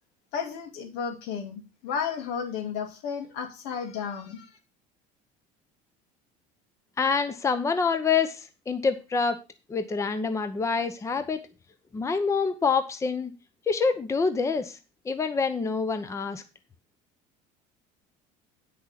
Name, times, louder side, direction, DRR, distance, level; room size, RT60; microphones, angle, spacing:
voice 1, 0.3-4.5, left 6 dB, 75° left, 5 dB, 2.6 m, -33 dB
voice 2, 7.0-9.4 9.7-11.4 11.9-13.3 13.7-14.8 15.0-16.4, left 5 dB, 20° left, 10 dB, 0.9 m, -26 dB
9.2 x 6.5 x 5.8 m, 0.30 s
cardioid pair, 130°, 16 cm